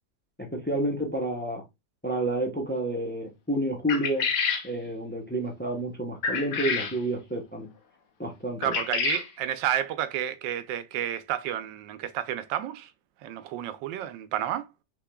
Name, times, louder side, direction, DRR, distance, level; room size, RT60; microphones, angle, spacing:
voice 1, 0.4-1.6 2.0-4.3 4.6-7.7 8.2-8.8, right 1 dB, 10° left, 0.5 m, -30 dB
sound 1, 3.9-4.7 6.2-7.0 8.6-9.3, left 6 dB, 70° left, 1.5 m, -28 dB
voice 2, 8.6-12.9 13.2-14.7, right 11 dB, 80° right, 1.3 m, -31 dB
6.0 x 3.6 x 2.2 m
omnidirectional pair, 2.0 m